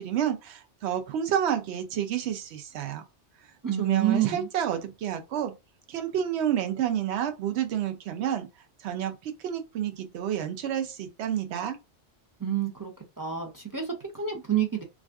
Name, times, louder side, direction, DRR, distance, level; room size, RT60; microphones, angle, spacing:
voice 1, 0.0-3.0 3.8-5.5 5.9-8.5 8.8-11.8, right 10 dB, 70° right, 0.8 m, -29 dB
voice 2, 3.6-4.5 12.4-12.9 13.2-14.8, right 9 dB, 30° right, 0.4 m, -28 dB
2.5 x 2.4 x 3.3 m
omnidirectional pair, 1.2 m